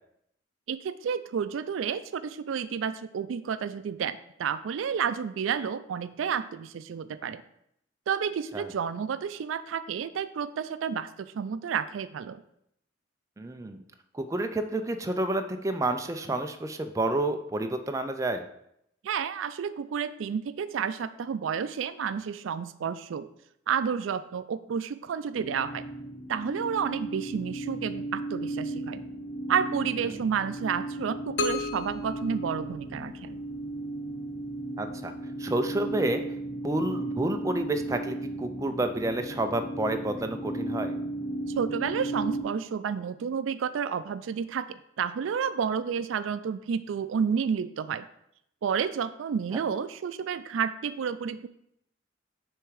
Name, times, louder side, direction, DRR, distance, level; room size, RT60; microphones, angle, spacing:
voice 1, 0.7-7.4 8.1-12.4 19.0-23.3 23.7-25.8 26.3-29.0 29.5-33.4 41.5-48.1 48.6-51.5, right 7 dB, 85° right, 14 dB, 0.3 m, -30 dB
voice 2, 13.4-13.8 14.1-18.5 30.1-30.2 34.8-35.1 35.4-36.2 36.6-41.0 49.5-49.6, right 2 dB, 15° right, 7 dB, 0.4 m, -29 dB
sound 1, 25.3-42.4, right 1 dB, 15° left, 1.0 m, -35 dB
sound 2, 31.4-33.3, left 3 dB, 65° left, 0.5 m, -34 dB
6.6 x 3.5 x 4.7 m, 0.76 s
head